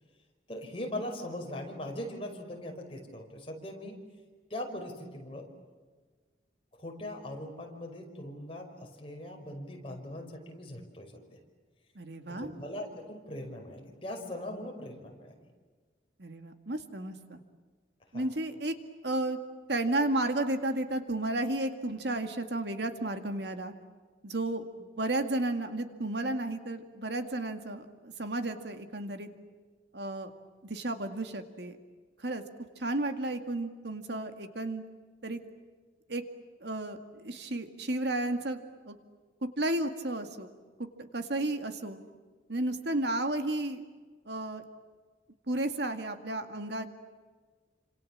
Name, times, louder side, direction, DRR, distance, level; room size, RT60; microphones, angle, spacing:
voice 1, 0.5-4.0 4.5-5.5 6.7-11.4 12.3-15.5 18.1-18.3, left 1 dB, 30° left, 1 dB, 5.5 m, -40 dB
voice 2, 12.0-12.5 16.2-17.4 18.1-18.8 19.0-19.4 19.7-23.7 24.2-29.3 29.9-30.3 30.7-31.8 32.2-32.4 32.8-34.8 35.2-35.4 36.1-36.2 36.6-38.6 38.9-39.0 39.6-40.5 41.0-42.0 42.5-43.9 44.3-44.6 45.5-46.9, right 2 dB, 65° right, 7 dB, 2.1 m, -33 dB
29.5 x 27.0 x 7.5 m, 1.4 s
head